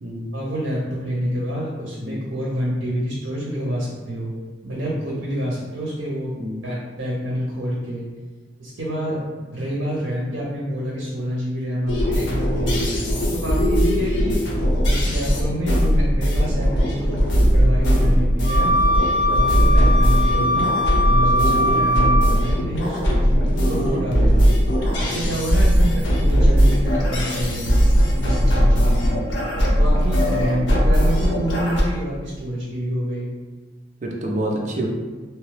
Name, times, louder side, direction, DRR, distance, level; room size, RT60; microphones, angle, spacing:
voice 1, 0.3-4.3 4.6-6.3 6.6-8.1 8.6-9.2 9.5-13.0 13.3-14.4 14.9-18.7 19.3-20.7 21.0-24.5 25.0-29.2 29.7-33.3, equal, 80° right, -5 dB, 0.7 m, -27 dB
voice 2, 6.3-6.6 18.2-18.5 23.4-23.7 25.2-25.4 28.2-28.5 30.6-30.7 34.0-34.9, right 1 dB, 40° right, -1 dB, 0.5 m, -30 dB
sound 1, 11.9-31.8, equal, 70° left, 0.6 m, -19 dB
Wind instrument woodwind instrument, 18.4-22.5, left 1 dB, 40° left, 1.2 m, -21 dB
2.9 x 2.2 x 3.2 m, 1.3 s
head